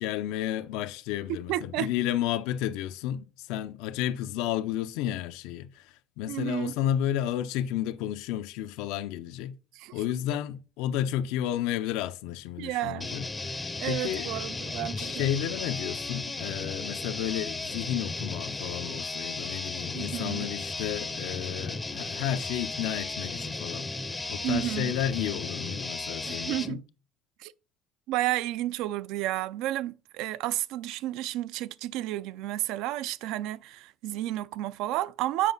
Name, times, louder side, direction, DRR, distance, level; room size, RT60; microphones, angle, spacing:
voice 1, 0.0-9.6 9.9-13.6 13.9-14.3 14.9-23.9 24.3-26.8, left 11 dB, 90° left, 0.6 m, -32 dB
voice 2, 1.5-1.9 6.3-6.8 9.7-9.9 12.6-13.2 13.8-15.3 19.9-20.5 24.4-24.9 26.3-26.8 27.4-27.5 28.1-35.5, right 14 dB, 70° right, 0.4 m, -31 dB
sound 1, 13.0-26.7, left 3 dB, 10° left, 0.5 m, -35 dB
7.5 x 5.1 x 3.9 m
cardioid pair, 160°, 0 cm